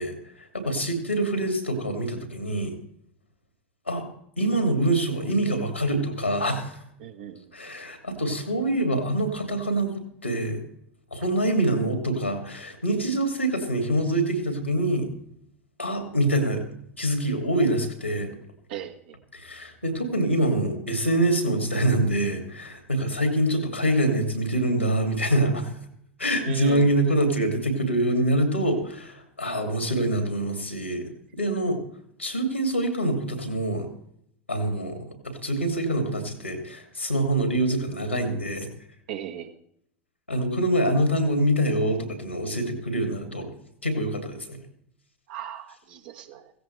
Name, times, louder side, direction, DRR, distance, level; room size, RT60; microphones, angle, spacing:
voice 1, 0.0-2.7 3.9-4.1 4.4-6.8 7.5-10.6 11.1-15.1 15.8-16.6 17.0-18.3 19.3-25.7 26.2-31.1 31.3-31.8 32.2-33.9 34.5-38.7 40.3-43.5 43.8-44.6, right 1 dB, 90° left, 5 dB, 2.8 m, -25 dB
voice 2, 7.0-7.4 18.7-19.1 26.4-26.9 39.1-39.5 45.3-46.5, right 10 dB, 55° right, 4 dB, 1.6 m, -37 dB
16.5 x 16.0 x 3.4 m, 0.71 s
figure-of-eight pair, 80°, 6 cm